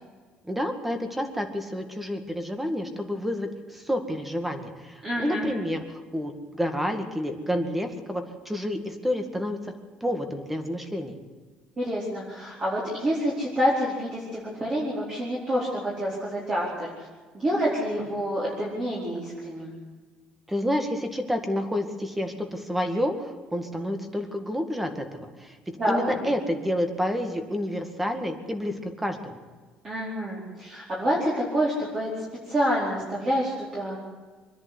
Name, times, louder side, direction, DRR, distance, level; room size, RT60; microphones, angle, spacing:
voice 1, 0.5-9.7 10.0-11.2 20.5-29.4, equal, 5° right, 7 dB, 2.0 m, -29 dB
voice 2, 5.0-5.4 11.8-16.9 17.3-19.7 25.8-26.0 29.8-34.0, equal, 25° right, -6 dB, 4.6 m, -27 dB
25.0 x 10.5 x 9.7 m, 1.4 s
cardioid pair, 160°, 3 cm